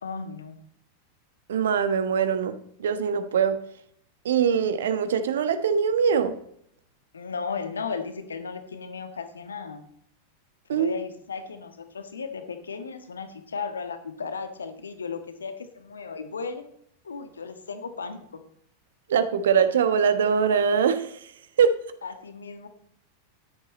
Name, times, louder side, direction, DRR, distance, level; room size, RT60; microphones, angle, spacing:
voice 1, 0.0-0.6 7.1-9.8 10.7-16.6 17.0-18.4 22.0-22.7, left 5 dB, 70° left, 8 dB, 1.4 m, -35 dB
voice 2, 1.5-3.6 4.2-6.3 10.7-10.9 19.1-21.1 21.6-21.7, right 7 dB, 60° right, 11 dB, 1.1 m, -22 dB
13.0 x 10.5 x 4.2 m, 0.71 s
figure-of-eight pair, 90°, 0 cm